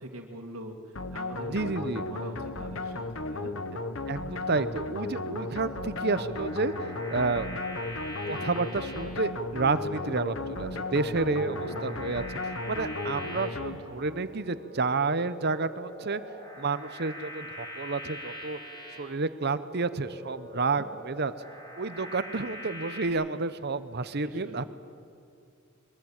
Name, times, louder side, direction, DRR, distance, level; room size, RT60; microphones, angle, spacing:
voice 1, 0.0-3.6 11.3-11.9 20.8-20.9 24.2-24.6, right 1 dB, 85° right, 0 dB, 2.3 m, -43 dB
sound 1, 1.0-14.3, left 2 dB, 65° left, 1.1 m, -35 dB
voice 2, 1.5-2.0 4.1-7.5 8.3-16.2 16.6-18.6 19.0-21.3 21.8-24.6, right 3 dB, 50° right, 14 dB, 0.9 m, -30 dB
sound 2, 5.6-23.1, equal, 20° left, 4.7 m, -43 dB
22.5 x 22.5 x 8.9 m, 2.4 s
head